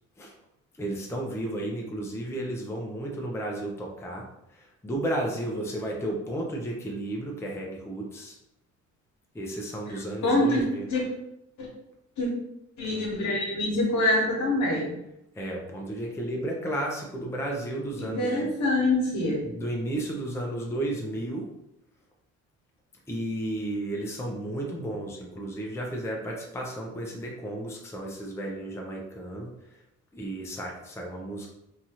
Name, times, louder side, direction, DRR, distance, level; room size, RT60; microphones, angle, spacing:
voice 1, 0.8-8.4 9.3-10.9 15.4-18.5 19.4-21.5 23.1-29.5 30.1-31.5, right 1 dB, 10° left, -1 dB, 0.5 m, -33 dB
voice 2, 10.2-10.6 10.9-11.0 11.6-11.7 12.2-12.3 12.8-14.9 18.0-19.4, left 1 dB, 70° left, -2 dB, 1.1 m, -25 dB
2.9 x 2.4 x 2.8 m, 0.83 s
cardioid pair, 90°, 30 cm